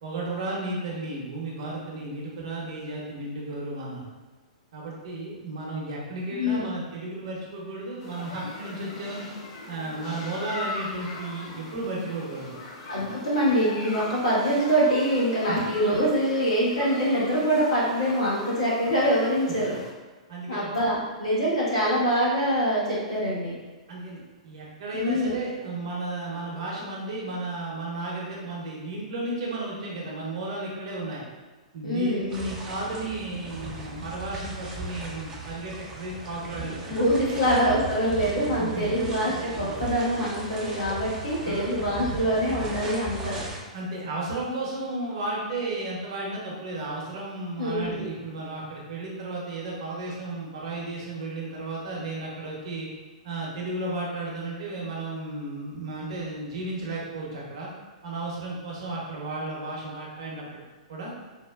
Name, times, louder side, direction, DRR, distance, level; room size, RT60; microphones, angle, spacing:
voice 1, 0.0-4.0 4.7-9.3 9.7-12.6 15.5-15.6 20.3-20.7 23.9-31.2 31.7-37.0 37.3-37.4 38.6-38.9 39.6-39.8 41.4-41.6 43.7-52.9 53.2-57.7 58.0-60.4 60.9-61.1, right 2 dB, 50° right, -4 dB, 0.9 m, -34 dB
voice 2, 6.4-6.7 12.9-19.8 20.5-23.5 24.9-25.3 31.8-32.3 36.9-43.4 47.6-48.1, equal, 60° left, -8 dB, 1.4 m, -24 dB
sound 1, 8.0-19.9, left 2 dB, 40° left, 0.5 m, -40 dB
sound 2, 32.3-43.6, right 1 dB, 20° right, 0.5 m, -37 dB
4.1 x 2.2 x 2.3 m, 1.3 s
figure-of-eight pair, 105°, 4 cm